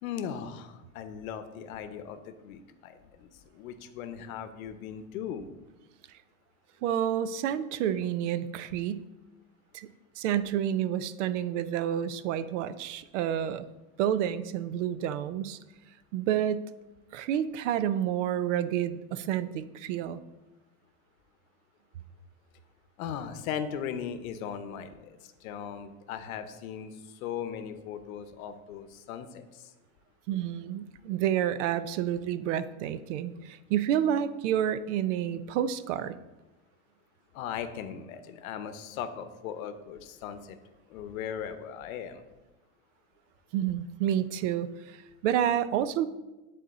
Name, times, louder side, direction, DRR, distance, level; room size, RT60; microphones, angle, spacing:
voice 1, 0.0-5.4 23.0-29.7 37.3-40.6 40.9-42.2, left 8 dB, 75° left, 10 dB, 0.8 m, -38 dB
voice 2, 6.8-9.0 9.7-9.9 10.2-13.7 14.0-15.6 16.1-16.7 17.1-20.2 30.3-36.2 43.5-46.1, right 10 dB, 60° right, 14 dB, 0.5 m, -29 dB
10.0 x 4.1 x 4.1 m, 1.1 s
supercardioid pair, 160°, 42 cm